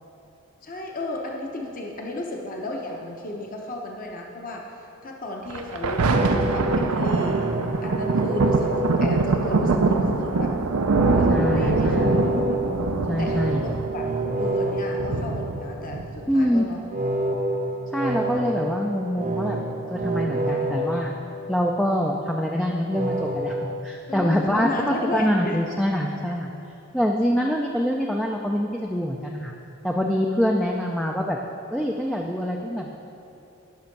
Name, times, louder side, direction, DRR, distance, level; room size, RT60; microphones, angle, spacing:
voice 1, 0.6-7.5 7.8-10.5 11.0-12.4 13.2-14.0 14.4-16.8 24.1-25.6, left 1 dB, 40° left, 0 dB, 0.8 m, -33 dB
Thunder, 5.5-16.5 17.1-17.2, right 3 dB, 85° right, 0.6 m, -23 dB
sound 1, 6.1-10.0 10.9-16.0 16.9-22.0 22.9-23.7, right 1 dB, 35° right, 0.7 m, -28 dB
voice 2, 11.3-12.1 13.1-13.6 16.3-16.7 17.9-19.6 19.9-21.1 21.5-23.5 23.8-26.5 26.9-29.5 29.8-31.4 31.7-33.0, equal, ahead, 0 dB, 0.3 m, -25 dB
11.5 x 6.2 x 4.6 m, 2.8 s
head